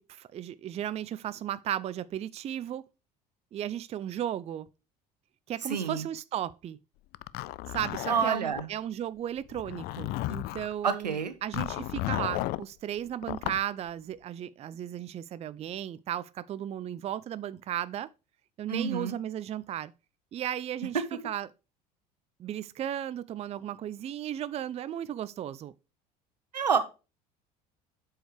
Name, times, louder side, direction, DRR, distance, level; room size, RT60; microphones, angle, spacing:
voice 1, 0.0-2.8 3.5-4.7 5.5-6.8 7.7-18.1 18.6-19.9 20.3-21.5 22.4-25.7, right 11 dB, 30° right, 0.4 m, -35 dB
voice 2, 5.7-6.1 8.1-8.7 10.8-11.3 18.7-19.1 26.5-26.8, right 6 dB, 90° right, 1.0 m, -28 dB
Zipper (clothing), 7.1-8.7 9.5-10.7 11.5-12.6 13.2-13.6, left 17 dB, 50° left, 0.4 m, -34 dB
7.8 x 4.7 x 4.8 m
hypercardioid pair, 65°, 21 cm